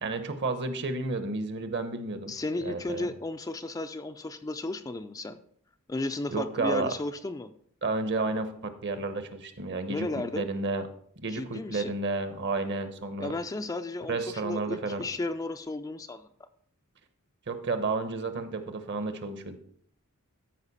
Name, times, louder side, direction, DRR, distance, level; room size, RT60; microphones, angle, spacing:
voice 1, 0.0-2.3 2.6-3.1 6.3-6.9 7.8-10.1 10.3-10.8 11.2-13.3 14.1-15.0 17.5-19.6, right 3 dB, 55° right, 9 dB, 0.9 m, -31 dB
voice 2, 2.3-5.4 5.9-7.5 9.9-10.5 11.3-11.9 13.2-16.5, left 2 dB, 15° left, 8 dB, 0.3 m, -34 dB
13.0 x 5.2 x 4.1 m, 0.63 s
head